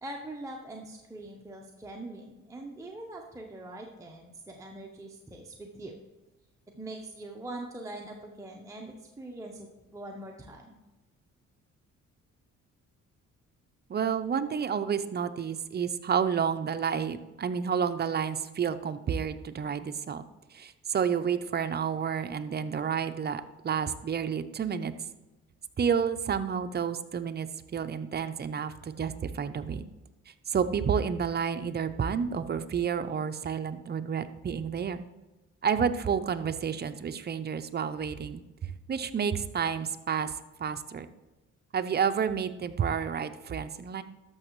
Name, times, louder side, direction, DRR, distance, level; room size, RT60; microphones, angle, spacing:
voice 1, 0.0-5.9 6.7-10.8, right 1 dB, 10° right, 0 dB, 0.9 m, -43 dB
voice 2, 13.9-20.2 20.5-24.9 25.8-29.8 30.3-35.0 35.6-40.3 40.6-41.1 41.7-44.0, right 7 dB, 35° right, 10 dB, 0.6 m, -30 dB
13.0 x 6.0 x 3.1 m, 1.0 s
cardioid pair, 90°, 30 cm